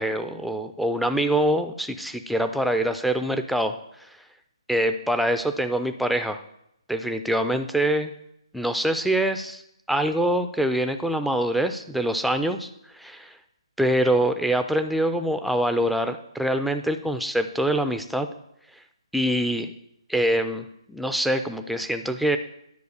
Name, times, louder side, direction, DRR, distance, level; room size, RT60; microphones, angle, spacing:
voice 1, 0.0-3.8 4.7-6.4 6.9-8.1 8.5-9.6 9.9-13.3 13.8-18.3 19.1-19.7 20.1-22.4, right 1 dB, ahead, 8 dB, 0.4 m, -24 dB
9.5 x 4.8 x 6.5 m, 0.78 s
figure-of-eight pair, 145°, 3 cm